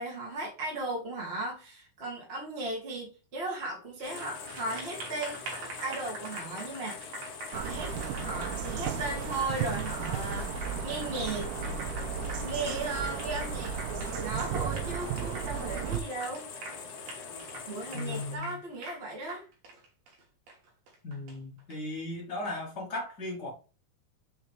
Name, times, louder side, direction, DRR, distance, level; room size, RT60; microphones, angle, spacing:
voice 1, 0.0-5.4 5.8-7.9 8.2-11.5 12.4-16.5 17.7-19.4, right 2 dB, 35° right, 1.0 m, -36 dB
sound 1, 4.0-18.4, left 5 dB, 70° left, 1.6 m, -44 dB
Applause, 4.0-21.7, right 2 dB, 55° right, 2.3 m, -45 dB
sound 2, 7.5-16.0, right 7 dB, 80° right, 1.9 m, -34 dB
voice 2, 17.9-18.6 21.0-23.5, left 2 dB, 40° left, 1.7 m, -36 dB
6.5 x 4.4 x 3.5 m
omnidirectional pair, 4.3 m